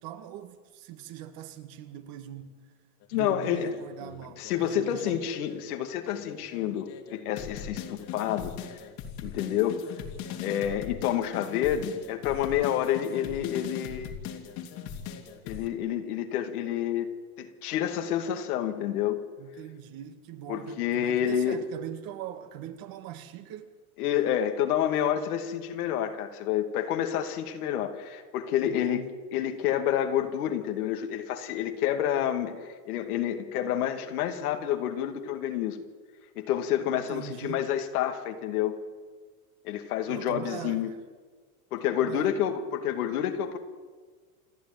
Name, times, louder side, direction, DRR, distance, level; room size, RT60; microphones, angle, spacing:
voice 1, 0.0-2.6 3.1-5.3 19.4-23.7 28.6-29.1 36.9-37.6 40.1-41.0 41.9-42.4, right 11 dB, 50° right, 2.2 m, -41 dB
sound 1, 3.0-5.6 6.0-15.7, left 8 dB, 55° left, 3.2 m, -40 dB
voice 2, 3.1-3.7 4.4-8.8 9.2-9.8 10.4-14.1 15.4-17.1 17.4-19.2 20.5-21.6 24.0-29.0 29.3-32.5 32.9-35.8 36.3-38.8 39.6-40.9 41.7-43.6, left 10 dB, 75° left, 2.6 m, -29 dB
28.5 x 11.0 x 9.3 m
supercardioid pair, 115°, 44 cm